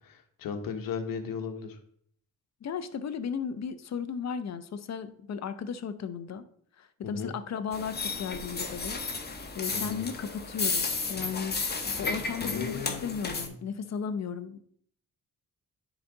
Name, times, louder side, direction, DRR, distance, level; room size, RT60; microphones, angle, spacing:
voice 1, 0.0-1.8 7.0-7.3 9.7-10.1 12.4-13.6, left 6 dB, 75° left, 7 dB, 1.2 m, -36 dB
voice 2, 2.6-6.4 6.8-9.0 9.5-14.6, left 6 dB, 50° left, 12 dB, 0.8 m, -35 dB
sound 1, 7.7-13.5, left 4 dB, 30° left, 1.3 m, -33 dB
9.7 x 4.1 x 3.9 m, 0.64 s
cardioid pair, 85°, 34 cm